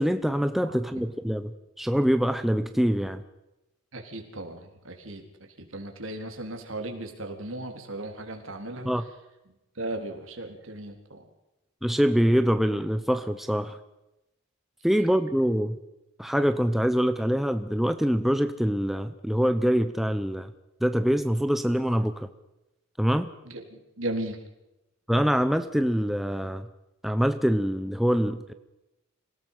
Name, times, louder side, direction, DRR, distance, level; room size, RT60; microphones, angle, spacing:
voice 1, 0.0-3.2 8.9-9.1 11.8-13.8 14.8-15.8 16.2-20.5 20.8-22.3 23.0-23.3 25.1-26.7 27.0-28.5, equal, ahead, 9 dB, 0.7 m, -24 dB
voice 2, 0.6-1.0 3.9-5.2 5.6-8.9 9.8-11.2 23.4-24.4, right 1 dB, 70° right, 4 dB, 3.8 m, -36 dB
27.0 x 17.5 x 5.7 m, 0.93 s
head